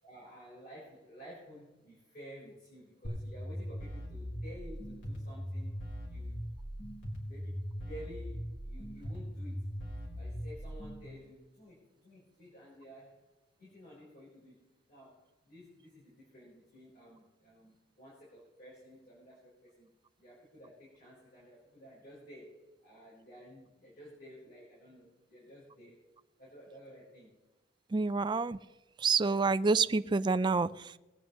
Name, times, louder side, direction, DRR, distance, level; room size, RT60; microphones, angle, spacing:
voice 1, 0.0-5.8 6.0-6.4 7.3-9.8 10.1-19.9 20.2-26.0 26.4-27.3, equal, 50° left, -7 dB, 4.5 m, -53 dB
sound 1, 3.0-11.1, equal, 70° left, 3.8 m, -40 dB
voice 2, 27.9-28.6 29.0-31.0, right 4 dB, 25° right, 14 dB, 0.4 m, -28 dB
21.0 x 8.9 x 3.1 m, 1.1 s
head